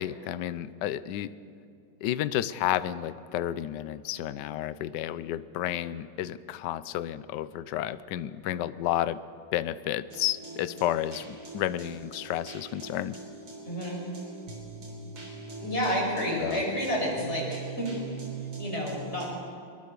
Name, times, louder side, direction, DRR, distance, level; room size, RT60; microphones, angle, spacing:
voice 1, 0.0-1.3 2.0-9.2 9.5-13.2 16.4-16.6, left 12 dB, 65° left, 15 dB, 1.2 m, -31 dB
sound 1, 10.1-19.3, right 3 dB, 80° right, 4.3 m, -42 dB
voice 2, 13.7-14.0 15.6-17.9 18.6-19.3, equal, 30° left, -2 dB, 6.2 m, -30 dB
22.5 x 22.0 x 6.7 m, 2.5 s
omnidirectional pair, 2.3 m